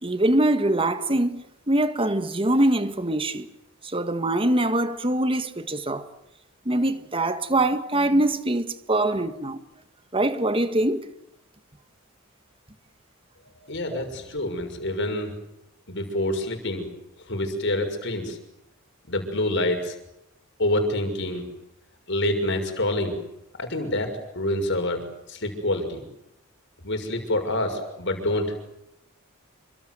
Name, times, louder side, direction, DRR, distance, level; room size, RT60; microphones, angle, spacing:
voice 1, 0.0-3.5 3.8-6.1 6.7-9.6 10.1-11.1 13.9-14.0, right 1 dB, 25° right, 1.8 m, -23 dB
voice 2, 13.6-15.3 15.9-16.9 17.3-18.4 19.1-19.9 20.6-21.5 22.1-23.2 23.6-25.0 25.3-26.0 26.8-28.5, left 1 dB, 55° left, 6.4 m, -27 dB
28.0 x 25.0 x 7.9 m
head